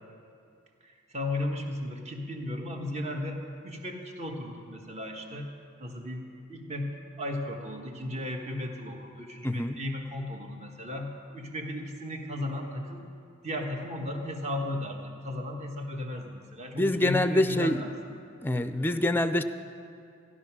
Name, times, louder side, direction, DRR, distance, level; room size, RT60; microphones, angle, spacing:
voice 1, 0.8-5.5 5.8-6.9 7.2-13.0 13.4-17.9, left 1 dB, 35° right, 2 dB, 1.5 m, -35 dB
voice 2, 9.4-9.8 16.7-17.8 18.4-19.4, left 1 dB, 10° left, 10 dB, 0.5 m, -25 dB
15.0 x 11.5 x 6.1 m, 2.4 s
head